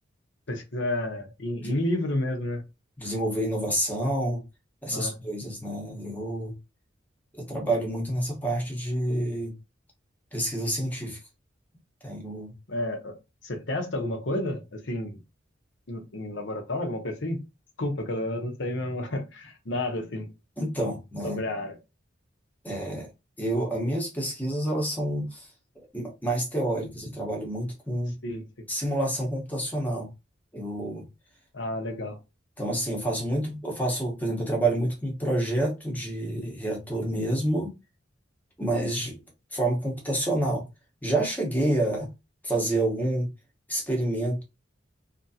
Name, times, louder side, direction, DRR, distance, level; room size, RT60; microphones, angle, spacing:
voice 1, 0.5-2.6 4.9-5.2 12.7-13.1 13.4-15.2 15.9-17.4 17.8-20.3 21.2-21.8 28.2-28.5 31.5-32.2, left 1 dB, 65° left, 0.8 m, -30 dB
voice 2, 3.0-4.4 4.8-6.6 7.3-9.5 10.3-11.2 12.0-12.5 20.6-21.4 22.6-23.1 23.4-25.5 25.9-28.1 28.7-30.1 30.5-31.0 32.6-37.7 38.6-39.2 39.5-40.6 41.0-42.1 42.4-43.3 43.7-44.4, right 1 dB, 10° left, 0.9 m, -28 dB
2.9 x 2.6 x 2.7 m
head